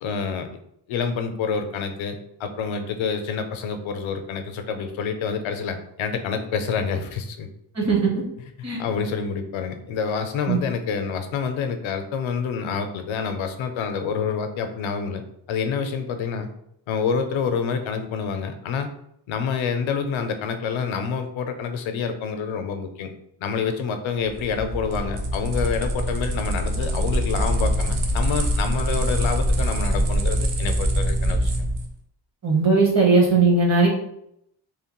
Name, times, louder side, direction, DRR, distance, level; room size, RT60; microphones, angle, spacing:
voice 1, 0.0-0.5 0.9-7.5 8.8-15.2 15.5-16.5 16.9-18.9 19.3-23.1 23.4-31.7, left 6 dB, 90° left, 7 dB, 0.5 m, -27 dB
voice 2, 7.7-8.1 8.6-8.8 10.5-10.6 32.4-33.9, right 4 dB, 35° right, -2 dB, 0.9 m, -18 dB
sound 1, 24.2-31.9, equal, 65° right, 0.6 m, -24 dB
2.9 x 2.1 x 2.9 m, 0.75 s
wide cardioid pair, 150°, 46 cm